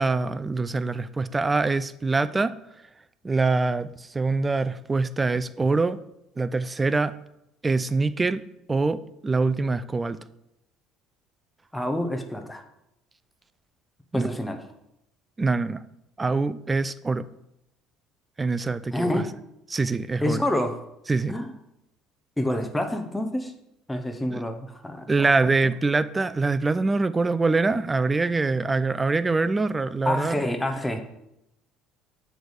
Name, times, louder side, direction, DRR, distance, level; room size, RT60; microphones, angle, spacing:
voice 1, 0.0-2.5 3.2-6.0 6.4-7.1 7.6-8.4 8.7-10.2 14.1-14.3 15.4-15.8 16.2-17.3 18.4-19.2 19.7-20.4 21.1-21.3 24.3-24.4 25.1-30.4, right 3 dB, 20° right, 0.4 m, -24 dB
voice 2, 11.7-12.6 14.1-14.6 18.9-19.3 20.2-20.8 21.3-21.5 22.4-23.5 23.9-25.5 30.0-31.0, left 1 dB, 5° left, 0.9 m, -28 dB
7.9 x 3.5 x 6.4 m
supercardioid pair, 100°, 0 cm